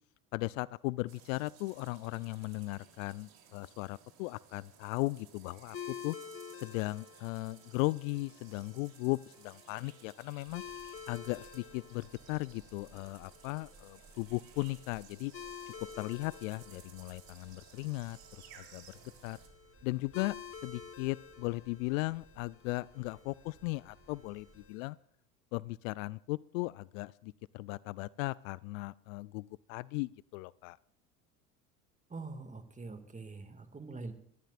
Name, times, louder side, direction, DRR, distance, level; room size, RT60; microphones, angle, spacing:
voice 1, 0.3-6.2 6.6-10.6 11.1-15.3 16.0-19.0 19.2-19.4 19.8-20.4 20.6-25.0 25.5-30.8, left 22 dB, 60° left, 22 dB, 0.5 m, -37 dB
sound 1, 1.1-19.5, right 8 dB, 50° right, 3.5 m, -59 dB
sound 2, 5.7-24.9, left 7 dB, 30° left, 2.0 m, -51 dB
sound 3, 10.4-24.7, right 3 dB, 30° right, 3.8 m, -62 dB
voice 2, 32.1-34.1, right 3 dB, 15° right, 7 dB, 2.1 m, -44 dB
23.0 x 13.0 x 2.5 m, 0.70 s
hypercardioid pair, 75°, 45 cm